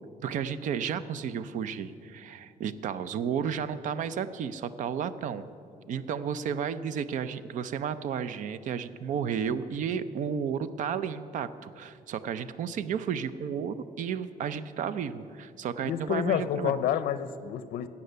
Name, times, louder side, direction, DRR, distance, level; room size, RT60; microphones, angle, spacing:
voice 1, 0.2-5.4 5.9-16.7, right 7 dB, 60° right, 14 dB, 0.5 m, -32 dB
voice 2, 15.8-17.9, left 9 dB, 80° left, 13 dB, 0.6 m, -29 dB
14.5 x 8.6 x 6.8 m, 2.4 s
cardioid pair, 160°, 15 cm